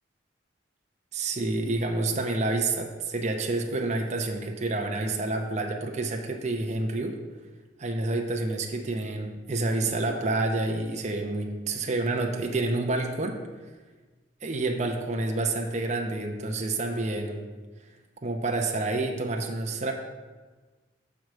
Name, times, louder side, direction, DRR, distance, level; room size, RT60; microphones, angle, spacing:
voice 1, 1.1-7.2 7.8-13.4 14.4-17.4 18.2-19.9, right 2 dB, 40° right, 3 dB, 0.7 m, -28 dB
6.2 x 4.8 x 6.5 m, 1.3 s
head